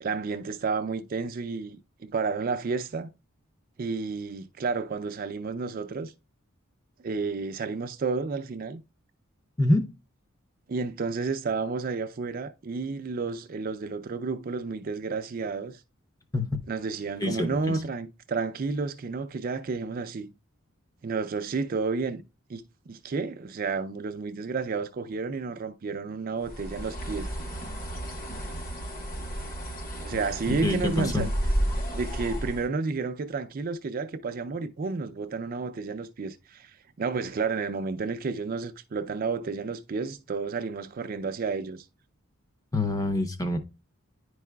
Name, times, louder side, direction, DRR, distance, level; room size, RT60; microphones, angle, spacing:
voice 1, 0.0-3.1 3.8-6.1 7.0-8.8 10.7-15.8 16.7-20.3 21.0-22.2 22.5-27.3 30.0-31.3 31.9-41.9, right 4 dB, 45° right, 0.4 m, -31 dB
voice 2, 17.2-17.8 30.5-31.3 42.7-43.6, left 2 dB, 15° left, 0.6 m, -26 dB
Bird, 26.4-32.7, equal, 45° left, 1.2 m, -32 dB
9.9 x 4.7 x 2.2 m
head